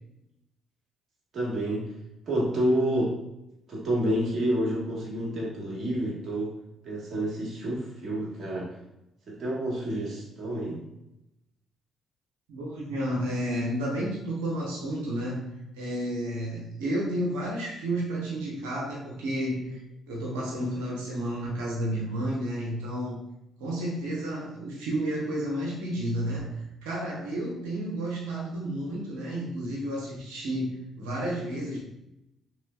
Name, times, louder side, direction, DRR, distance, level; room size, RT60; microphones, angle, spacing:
voice 1, 1.3-1.9 2.3-3.2 3.7-6.6 6.8-8.7 9.3-10.8, right 1 dB, 50° right, -6 dB, 1.4 m, -29 dB
voice 2, 12.5-23.2 23.6-31.8, right 1 dB, 85° right, -3 dB, 0.8 m, -31 dB
3.1 x 3.1 x 2.3 m, 0.87 s
hypercardioid pair, 55°, 0 cm